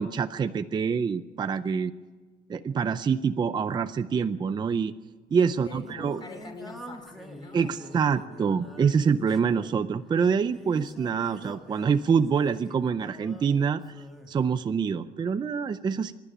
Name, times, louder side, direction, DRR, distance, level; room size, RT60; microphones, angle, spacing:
voice 1, 0.0-1.9 2.5-4.9 5.3-6.2 7.5-13.8 14.3-16.1, right 6 dB, 25° right, 10 dB, 0.5 m, -26 dB
Singing, 5.3-14.3, right 1 dB, ahead, 1.9 m, -46 dB
voice 2, 5.4-8.2, left 3 dB, 25° left, 5 dB, 3.7 m, -45 dB
26.0 x 11.5 x 9.8 m, 1.4 s
cardioid pair, 165°, 16 cm